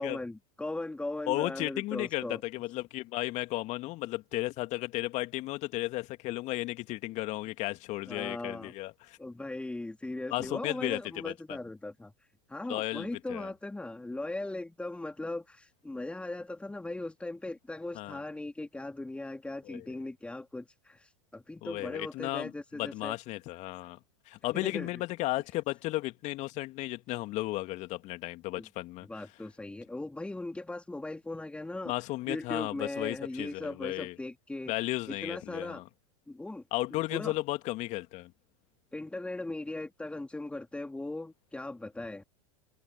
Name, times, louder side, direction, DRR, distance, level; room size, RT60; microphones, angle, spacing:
voice 1, 0.0-2.4 8.1-8.7 9.2-12.1 12.5-23.2 24.5-24.9 28.6-28.7 29.1-31.9 32.3-34.7 35.1-35.8 36.3-36.6 37.1-37.3 38.9-42.2, left 2 dB, 5° left, 3.7 m, -38 dB
voice 2, 1.3-9.2 10.3-11.6 12.7-13.5 17.9-18.2 19.7-19.9 21.6-24.0 24.3-29.1 31.9-34.2 34.7-35.9 36.7-38.3, left 18 dB, 45° left, 2.5 m, -34 dB
figure-of-eight pair, 85°, 17 cm